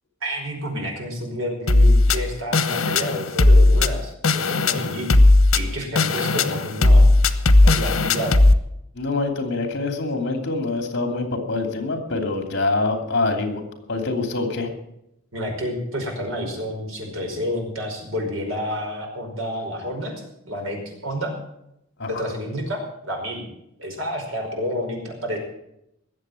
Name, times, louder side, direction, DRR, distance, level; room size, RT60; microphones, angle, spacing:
voice 1, 0.2-5.1 5.5-7.1 7.6-8.4 15.3-20.1 20.5-21.4 22.1-23.5 23.8-25.4, equal, 70° right, 2 dB, 5.2 m, -29 dB
sound 1, 1.7-8.5, left 2 dB, 85° left, 1.1 m, -16 dB
voice 2, 8.9-13.6 13.9-14.7 22.0-22.2, left 3 dB, 55° left, 5 dB, 2.9 m, -25 dB
19.5 x 7.8 x 7.8 m, 0.80 s
head